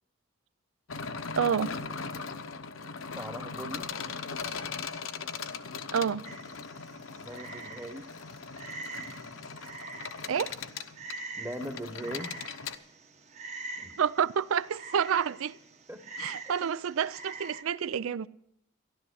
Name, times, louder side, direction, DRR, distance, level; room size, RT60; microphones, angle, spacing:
sound 1, 0.9-12.8, left 5 dB, 80° left, 0.9 m, -39 dB
voice 1, 1.4-1.7 5.9-6.2 10.3-10.5 14.0-15.6 16.2-18.3, right 7 dB, 85° right, 0.4 m, -28 dB
voice 2, 3.0-3.9 7.2-8.1 11.3-12.4 13.8-14.0 15.9-16.0, equal, 10° right, 1.0 m, -40 dB
Frog, 6.2-17.6, right 3 dB, 35° right, 1.0 m, -45 dB
14.0 x 12.0 x 6.3 m
head